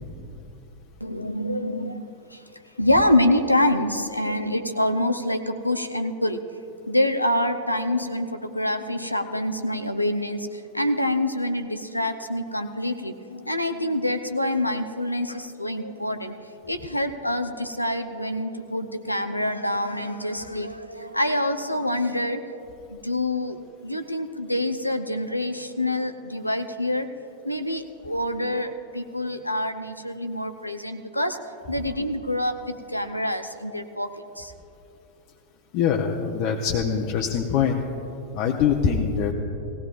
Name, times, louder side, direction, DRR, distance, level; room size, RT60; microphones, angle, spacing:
voice 1, 1.0-2.4 2.8-6.4 6.9-22.4 22.9-23.6 23.8-27.1 27.4-31.4 31.7-34.5, left 1 dB, 85° left, 8 dB, 0.6 m, -26 dB
voice 2, 35.7-37.8 38.3-39.3, left 7 dB, 40° left, 0 dB, 0.8 m, -23 dB
18.5 x 17.5 x 2.5 m, 2.8 s
figure-of-eight pair, 90°, 0 cm